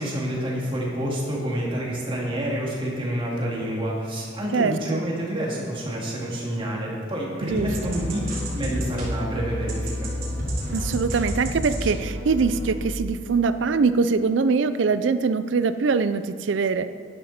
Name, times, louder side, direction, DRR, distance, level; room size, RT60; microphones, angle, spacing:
voice 1, 0.0-8.2 8.5-10.1, right 1 dB, 30° right, -3 dB, 2.5 m, -28 dB
voice 2, 4.5-5.0 7.4-8.0 10.7-16.9, right 4 dB, 75° right, 12 dB, 0.4 m, -23 dB
sound 1, 7.5-12.8, equal, 50° right, 3.0 m, -30 dB
11.0 x 10.5 x 4.3 m, 2.3 s
head